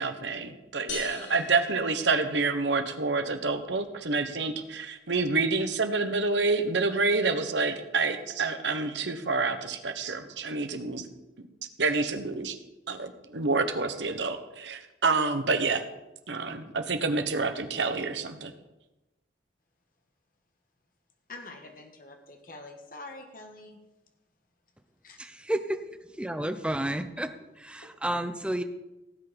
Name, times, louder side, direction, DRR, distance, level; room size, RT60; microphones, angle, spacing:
voice 1, 0.0-11.0 11.8-12.6 12.9-15.8 16.3-18.5, right 3 dB, 80° right, 8 dB, 1.2 m, -28 dB
sound 1, 0.9-2.7, left 4 dB, 90° left, 1.8 m, -41 dB
voice 2, 21.3-23.8 25.0-25.2 27.8-27.9, left 2 dB, 50° left, 4 dB, 1.7 m, -46 dB
voice 3, 25.2-25.8 26.1-27.3 27.6-28.6, right 1 dB, 5° right, 8 dB, 0.7 m, -31 dB
17.0 x 8.5 x 5.3 m, 1.0 s
head